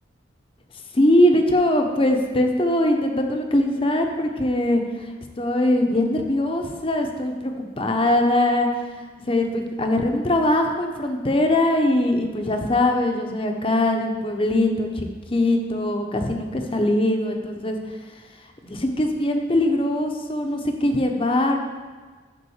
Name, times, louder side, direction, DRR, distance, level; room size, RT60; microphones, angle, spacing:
voice 1, 0.9-5.1 5.4-8.7 9.3-18.0 18.6-21.6, left 1 dB, 30° left, 3 dB, 0.8 m, -21 dB
10.5 x 3.8 x 7.1 m, 1.4 s
head